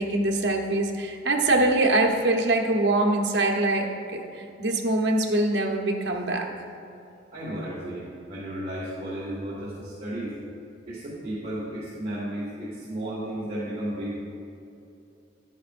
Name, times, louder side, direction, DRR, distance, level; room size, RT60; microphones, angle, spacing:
voice 1, 0.0-6.5, right 2 dB, 60° right, 1 dB, 0.9 m, -24 dB
voice 2, 7.3-10.3 10.9-14.2, right 1 dB, 35° right, -8 dB, 1.7 m, -33 dB
11.0 x 9.8 x 2.5 m, 2.7 s
head